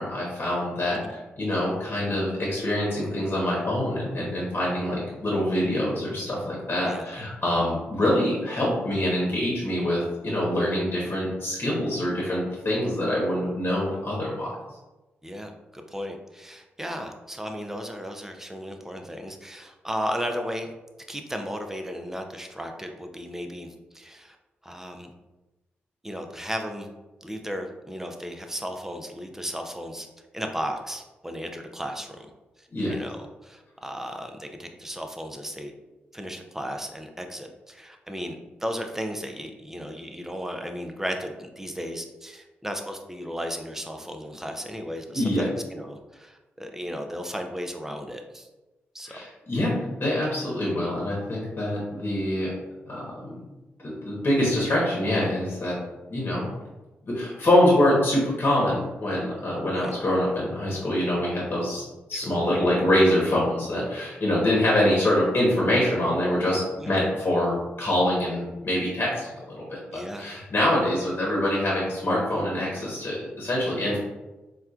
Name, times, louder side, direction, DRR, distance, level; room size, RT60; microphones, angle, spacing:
voice 1, 0.0-14.5 32.7-33.0 45.1-45.5 49.1-52.5 52.9-53.4 53.8-55.8 56.1-56.5 57.1-61.8 62.1-74.0, left 1 dB, 50° left, -4 dB, 1.1 m, -25 dB
voice 2, 15.2-20.7 21.1-24.4 24.6-25.1 26.0-26.9 27.2-30.1 30.3-32.3 32.6-35.7 36.1-48.5 48.9-49.1 59.7-60.0 62.1-62.4 66.8-67.0 69.9-70.3, equal, 10° right, 4 dB, 0.5 m, -35 dB
4.2 x 2.3 x 2.4 m, 1.1 s
supercardioid pair, 45°, 5 cm